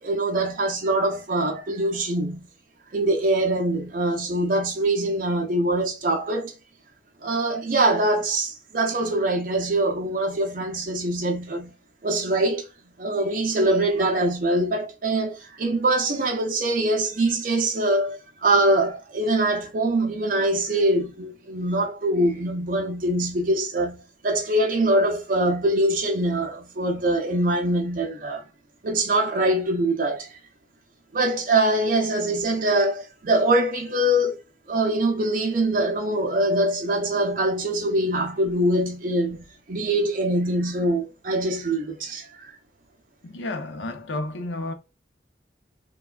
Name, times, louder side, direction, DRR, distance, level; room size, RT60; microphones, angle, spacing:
voice 1, 0.0-2.5 2.9-6.5 7.2-11.7 12.0-12.7 13.0-28.4 28.8-30.4 31.1-34.4 34.7-42.6, right 1 dB, 45° right, 0.5 m, -23 dB
voice 2, 43.2-44.7, left 2 dB, 75° left, 0.6 m, -31 dB
3.3 x 2.2 x 2.3 m
head